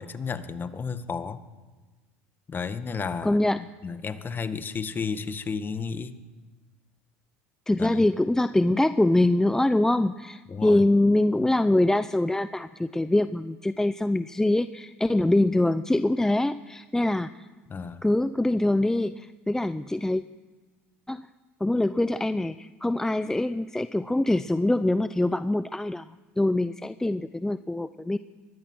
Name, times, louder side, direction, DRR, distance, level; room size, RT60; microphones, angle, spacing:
voice 1, 0.0-1.4 2.5-6.2 7.8-8.1 10.5-10.8 17.7-18.1, left 5 dB, 30° left, 11 dB, 1.8 m, -33 dB
voice 2, 3.2-3.6 7.7-17.5 18.0-20.2 21.1-21.2 21.6-28.2, left 1 dB, 5° left, 13 dB, 0.7 m, -24 dB
24.0 x 20.5 x 6.3 m, 1.3 s
hypercardioid pair, 75°, 7 cm